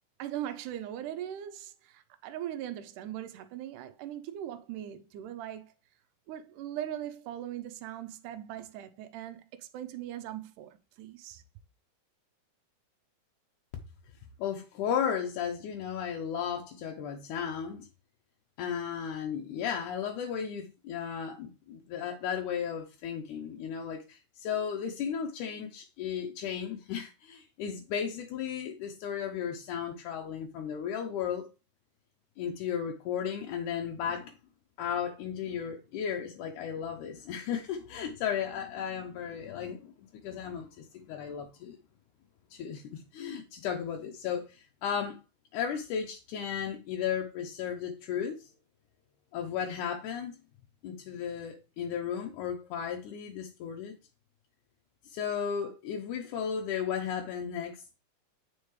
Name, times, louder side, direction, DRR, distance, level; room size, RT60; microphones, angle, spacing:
voice 1, 0.2-5.7 6.3-11.4, right 11 dB, 90° right, 2.2 m, -40 dB
voice 2, 14.4-17.9 18.6-31.5 32.4-34.3 34.8-39.9 40.2-41.8 42.5-45.2 45.5-48.4 49.3-50.4 50.8-53.9 55.1-58.0, left 8 dB, 80° left, 2.3 m, -35 dB
8.0 x 5.1 x 3.1 m
omnidirectional pair, 3.5 m